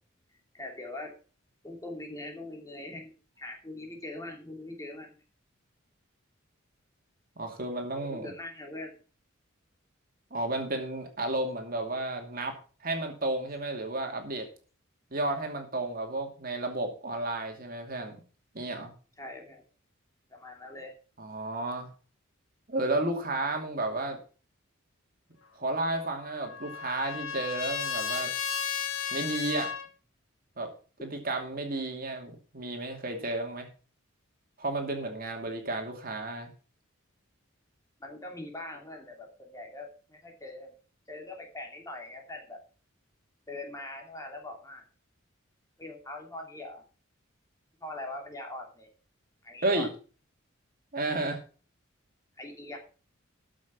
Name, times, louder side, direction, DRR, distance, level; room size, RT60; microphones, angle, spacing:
voice 1, 0.5-1.1 1.6-5.1 8.0-9.0 19.2-19.6 20.3-20.9 38.0-40.7 41.1-42.6 43.5-44.8 45.8-46.8 47.8-48.9 49.4-49.9 52.4-52.8, left 2 dB, 15° left, 1 dB, 2.8 m, -42 dB
voice 2, 7.4-8.3 10.3-14.5 15.1-18.2 18.5-18.9 21.2-21.9 22.7-24.2 25.6-28.3 29.1-29.7 30.6-30.7 31.0-33.7 34.6-36.5 49.6-49.9 50.9-51.4, right 2 dB, 45° right, 4 dB, 2.5 m, -32 dB
Trumpet, 26.0-29.9, left 7 dB, 80° left, 2.0 m, -34 dB
13.5 x 6.3 x 5.9 m, 0.37 s
head